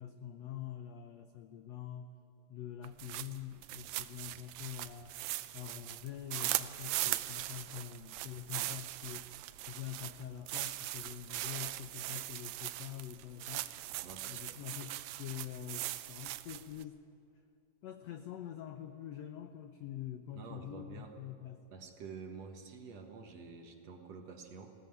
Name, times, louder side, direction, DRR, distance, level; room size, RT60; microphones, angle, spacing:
voice 1, 0.0-2.1 2.5-5.1 5.5-13.7 14.2-17.0 17.8-21.7, left 10 dB, 90° left, 8 dB, 1.4 m, -45 dB
sound 1, 2.8-16.8, right 16 dB, 90° right, 2.4 m, -40 dB
voice 2, 14.0-14.6 20.3-21.2 21.7-24.7, right 5 dB, 55° right, 4 dB, 2.2 m, -49 dB
20.0 x 17.0 x 9.1 m, 2.6 s
omnidirectional pair, 4.0 m